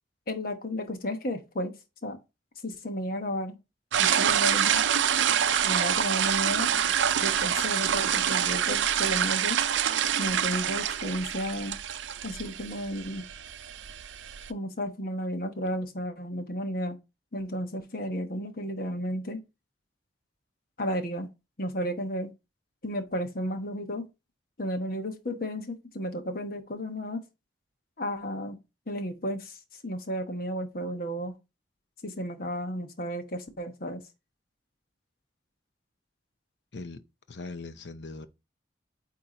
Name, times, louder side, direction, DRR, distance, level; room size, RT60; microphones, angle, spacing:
voice 1, 0.3-1.8 2.0-2.2 2.6-3.6 4.0-4.8 5.6-6.7 7.2-9.6 10.2-11.8 12.2-13.3 14.5-17.0 17.3-19.4 20.8-21.3 21.6-22.3 22.8-24.1 24.6-27.2 28.0-28.6 28.9-31.4 32.0-34.0, equal, 50° left, 1.0 m, -33 dB
sound 1, 3.9-14.5, right 9 dB, 85° right, 0.5 m, -26 dB
voice 2, 37.3-38.3, left 3 dB, 70° left, 0.7 m, -40 dB
8.7 x 2.9 x 3.9 m
head